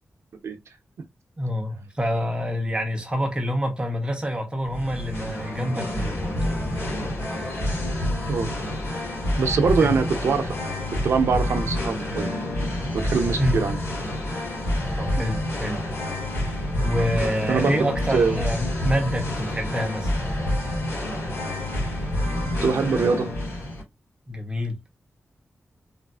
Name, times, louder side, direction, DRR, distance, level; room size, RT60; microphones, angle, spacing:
voice 1, 1.4-6.6 9.8-10.0 13.4-13.6 15.0-15.8 16.8-20.1 24.3-24.8, equal, 20° right, 0.7 m, -27 dB
Singing, 4.6-23.8, left 1 dB, 60° left, 1.5 m, -28 dB
voice 2, 9.4-10.5 11.0-12.3 12.9-13.8 17.5-17.7 18.1-18.4 22.6-23.3, right 5 dB, 85° right, 0.6 m, -23 dB
3.3 x 2.4 x 2.3 m
wide cardioid pair, 160°, 5 cm